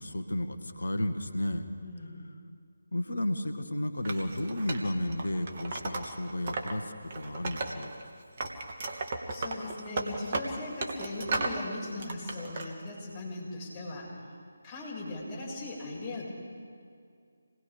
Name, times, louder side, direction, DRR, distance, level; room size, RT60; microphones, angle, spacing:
voice 1, 0.0-1.7 2.9-7.9, left 1 dB, 65° left, 8 dB, 1.8 m, -33 dB
voice 2, 1.8-2.2 9.3-14.1 14.6-16.3, left 2 dB, 15° left, -6 dB, 6.6 m, -39 dB
Wood, 4.0-6.7 7.0-8.1 8.4-11.6 12.0-12.7, right 3 dB, 35° right, 2.1 m, -35 dB
27.5 x 20.5 x 5.2 m, 2.3 s
figure-of-eight pair, 150°, 0 cm